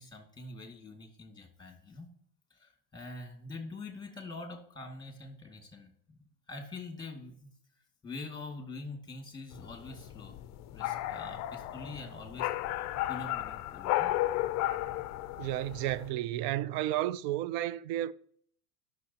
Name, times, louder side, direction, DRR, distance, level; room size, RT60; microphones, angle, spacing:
voice 1, 0.0-2.1 2.5-7.5 8.0-10.4 10.7-12.5 13.1-14.1, left 3 dB, 10° left, 2.2 m, -45 dB
sound 1, 9.5-16.1, left 15 dB, 35° left, 0.5 m, -34 dB
voice 2, 15.4-18.1, right 14 dB, 50° right, 0.5 m, -32 dB
12.5 x 6.2 x 2.9 m
hypercardioid pair, 100°, 46 cm